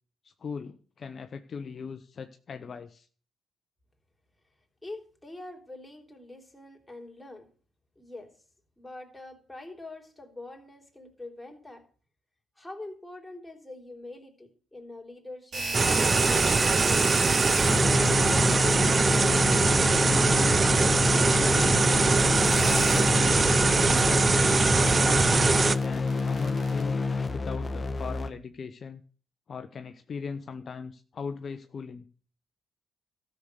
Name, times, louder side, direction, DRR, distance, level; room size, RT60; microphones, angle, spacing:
voice 1, 0.2-3.1 19.1-22.0 22.6-24.9 25.7-27.0 27.3-29.0 29.5-32.0, left 5 dB, 45° left, 8 dB, 0.8 m, -39 dB
voice 2, 4.8-7.5 8.0-8.3 8.8-11.8 12.6-17.0, left 2 dB, 10° left, 2 dB, 3.4 m, -44 dB
sound 1, 15.5-26.8, right 2 dB, 50° right, 3.4 m, -36 dB
sound 2, 15.7-25.8, right 4 dB, 30° right, 0.6 m, -22 dB
sound 3, 17.6-28.3, left 4 dB, 25° left, 1.5 m, -28 dB
13.0 x 6.7 x 8.1 m, 0.42 s
cardioid pair, 90°, 0 cm